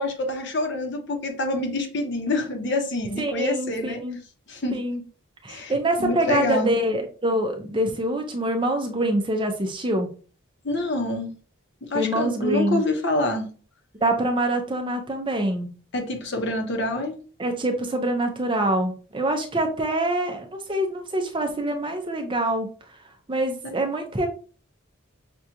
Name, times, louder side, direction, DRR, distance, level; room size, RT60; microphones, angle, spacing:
voice 1, 0.0-4.0 4.5-4.8 5.5-5.7 6.0-6.7 10.6-11.3 11.9-13.5 15.9-17.1, left 2 dB, 55° left, 3 dB, 1.0 m, -26 dB
voice 2, 3.2-4.2 4.7-5.0 5.4-10.1 11.9-12.8 14.0-15.7 17.4-22.7 23.3-24.3, right 1 dB, 25° right, 5 dB, 0.5 m, -25 dB
6.0 x 2.4 x 2.8 m, 0.38 s
head